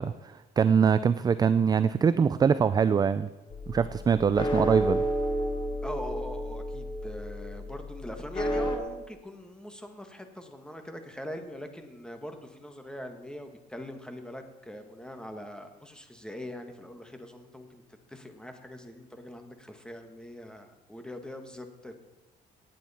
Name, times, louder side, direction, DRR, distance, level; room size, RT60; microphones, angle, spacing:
voice 1, 0.0-3.3 3.7-5.0, right 6 dB, 25° right, 14 dB, 0.3 m, -23 dB
sound 1, 3.5-8.8, equal, 25° left, 1.8 m, -31 dB
voice 2, 5.8-17.8 18.1-22.0, left 1 dB, 5° left, 6 dB, 1.5 m, -42 dB
17.5 x 9.2 x 4.2 m, 1.1 s
cardioid pair, 110°, 17 cm